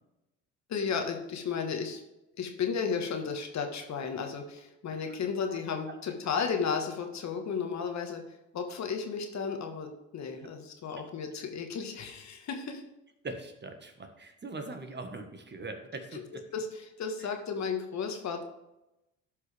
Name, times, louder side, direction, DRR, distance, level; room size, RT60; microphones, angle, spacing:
voice 1, 0.7-2.0 2.4-8.2 8.5-12.8 16.1-18.4, left 6 dB, 45° left, 4 dB, 1.5 m, -34 dB
voice 2, 13.2-16.4 17.2-17.3, right 2 dB, 30° right, 6 dB, 1.4 m, -42 dB
12.0 x 5.4 x 3.4 m, 0.93 s
hypercardioid pair, 65°, 37 cm